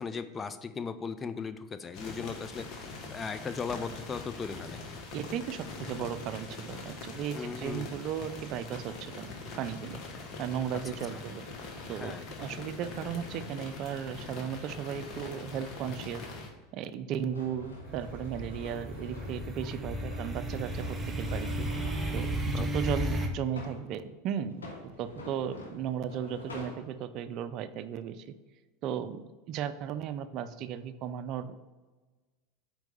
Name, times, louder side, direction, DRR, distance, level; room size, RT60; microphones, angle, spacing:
voice 1, 0.0-5.0 7.3-7.9 11.1-11.2 11.9-12.2 22.5-22.9, left 5 dB, 25° left, 11 dB, 0.4 m, -38 dB
sound 1, 1.9-16.5, left 3 dB, 45° left, 1.2 m, -43 dB
voice 2, 5.1-9.3 9.6-10.0 10.4-11.4 11.9-16.2 16.7-21.7 22.1-28.3 28.8-29.2 29.5-31.6, right 9 dB, 50° right, 12 dB, 0.4 m, -36 dB
sound 2, 17.2-22.2 23.0-23.9 24.5-26.8, left 3 dB, 85° left, 1.8 m, -47 dB
sound 3, 17.8-23.3, right 1 dB, 15° right, 0.9 m, -34 dB
4.6 x 4.5 x 5.3 m, 1.3 s
hypercardioid pair, 90°, 0 cm